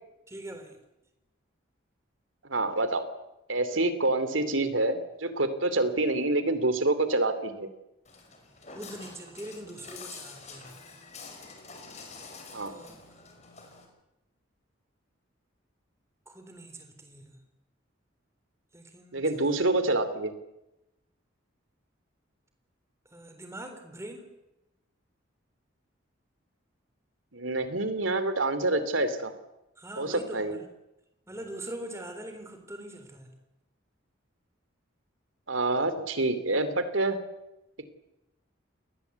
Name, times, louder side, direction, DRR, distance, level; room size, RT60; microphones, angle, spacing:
voice 1, 0.3-0.8 8.7-10.7 12.6-13.2 16.3-17.4 18.7-19.6 23.1-24.3 29.8-30.7 31.3-33.3, right 1 dB, 15° right, 6 dB, 3.6 m, -43 dB
voice 2, 2.5-3.1 3.5-7.7 12.5-12.7 19.1-20.3 27.3-29.3 30.0-30.6 35.5-37.2, right 2 dB, 80° right, 11 dB, 2.9 m, -27 dB
Walk footsteps, 8.0-13.8, left 4 dB, 35° left, 5.1 m, -47 dB
28.0 x 20.0 x 8.3 m, 0.92 s
head